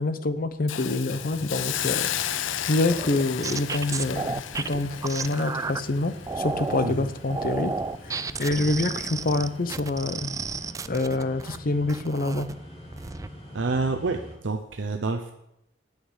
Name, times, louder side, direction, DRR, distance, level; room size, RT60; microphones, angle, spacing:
voice 1, 0.0-2.1 2.7-7.7 8.1-10.3 10.9-12.5, left 2 dB, 50° left, 11 dB, 0.8 m, -26 dB
Hiss, 0.7-7.7 8.1-8.3, left 11 dB, 90° left, 0.5 m, -33 dB
sound 1, 1.1-14.4, equal, 35° left, 2.7 m, -44 dB
sound 2, 2.9-5.8 6.3-6.9 7.3-11.6 11.9-12.5 12.9-13.3, right 4 dB, 20° right, 0.3 m, -32 dB
voice 2, 13.5-15.3, right 3 dB, 75° right, 5 dB, 0.7 m, -28 dB
9.4 x 6.5 x 8.1 m, 0.84 s
head